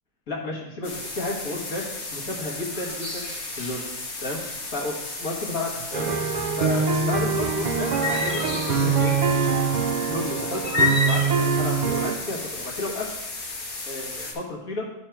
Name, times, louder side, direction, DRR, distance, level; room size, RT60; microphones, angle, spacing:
voice 1, 0.3-3.3 3.6-3.9 4.2-4.4 4.7-6.1 6.6-9.1 10.1-13.1 13.9-14.9, left 2 dB, 70° left, -4 dB, 1.9 m, -32 dB
sound 1, 0.8-14.3, left 3 dB, 90° left, 1.8 m, -35 dB
sound 2, 5.9-12.1, right 5 dB, 80° right, 0.4 m, -24 dB
sound 3, 6.7-12.1, left 3 dB, 35° left, 0.4 m, -27 dB
10.5 x 3.6 x 4.5 m, 0.93 s
omnidirectional pair, 1.5 m